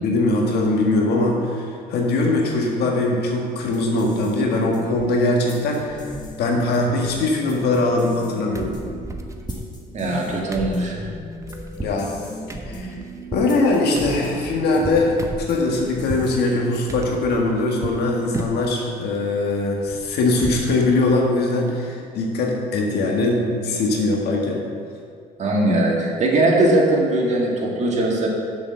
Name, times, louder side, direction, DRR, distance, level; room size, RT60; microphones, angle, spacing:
voice 1, 0.0-6.0 6.4-8.8 11.8-12.1 12.6-12.9 13.3-24.6, left 2 dB, 75° left, 0 dB, 1.6 m, -21 dB
sound 1, 3.6-17.1, left 1 dB, 25° left, 1.8 m, -38 dB
sound 2, 3.6-4.0 4.3-5.1 5.4-5.5 5.8-6.6 6.9-8.3 8.5-16.3 16.9-18.0 18.3-18.8 19.1-20.7 21.1-21.2 21.5-21.7, right 2 dB, 20° right, 0.8 m, -35 dB
voice 2, 9.9-11.0 25.4-28.3, right 1 dB, 45° right, -2 dB, 2.0 m, -20 dB
6.8 x 6.3 x 6.4 m, 2.2 s
cardioid pair, 110°, 17 cm